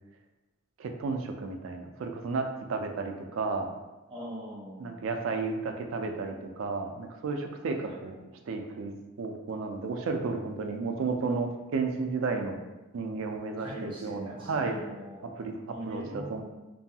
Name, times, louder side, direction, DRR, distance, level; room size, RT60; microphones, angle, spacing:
voice 1, 0.8-3.7 4.8-12.6 12.9-14.8 15.4-15.6 15.9-16.4, right 4 dB, 80° right, 4 dB, 0.3 m, -33 dB
voice 2, 4.1-5.0 7.8-8.0 13.6-15.3 15.7-16.4, equal, 25° right, -6 dB, 0.6 m, -41 dB
2.6 x 2.3 x 2.7 m, 1.1 s
head